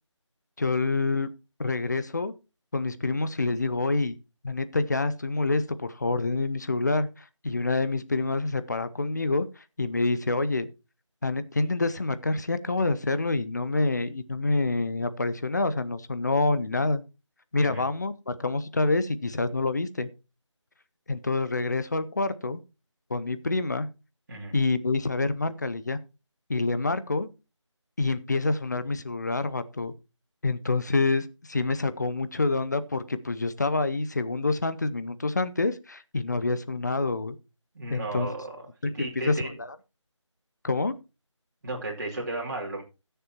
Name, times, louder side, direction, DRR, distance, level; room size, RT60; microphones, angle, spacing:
voice 1, 0.6-1.3 1.6-2.3 2.7-4.2 4.4-9.5 9.8-10.7 11.2-17.0 17.5-20.1 21.1-22.6 23.1-23.9 24.5-26.0 26.5-27.3 28.0-29.9 30.4-37.4 37.9-38.3 39.0-39.8 40.6-40.9, left 3 dB, 35° left, 13 dB, 0.6 m, -27 dB
voice 2, 37.7-38.6 38.9-39.5 41.6-42.8, right 2 dB, 35° right, -3 dB, 2.9 m, -34 dB
20.5 x 6.8 x 2.9 m, 0.29 s
figure-of-eight pair, 165°, 16 cm